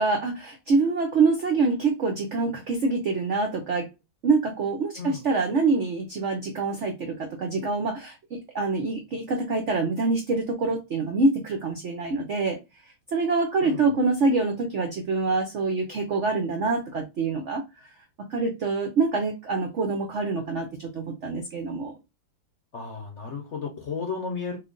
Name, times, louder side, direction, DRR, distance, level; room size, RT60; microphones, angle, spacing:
voice 1, 0.0-3.9 4.2-12.6 13.1-17.6 18.3-21.9, right 3 dB, 80° right, 0.6 m, -25 dB
voice 2, 13.6-14.0 22.7-24.6, left 5 dB, 55° left, 0.8 m, -34 dB
3.1 x 2.4 x 3.7 m
omnidirectional pair, 2.1 m